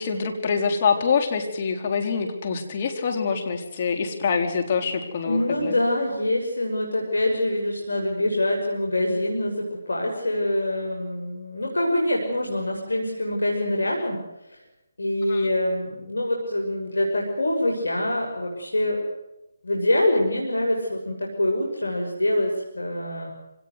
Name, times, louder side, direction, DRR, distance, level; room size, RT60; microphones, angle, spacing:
voice 1, 0.0-5.7 15.3-15.5, left 5 dB, 40° left, 4 dB, 4.2 m, -25 dB
voice 2, 5.2-14.2 14.5-14.6 15.0-19.0 19.6-23.3, left 1 dB, 85° left, 0 dB, 5.9 m, -25 dB
25.0 x 18.5 x 8.1 m, 0.95 s
figure-of-eight pair, 155°, 0 cm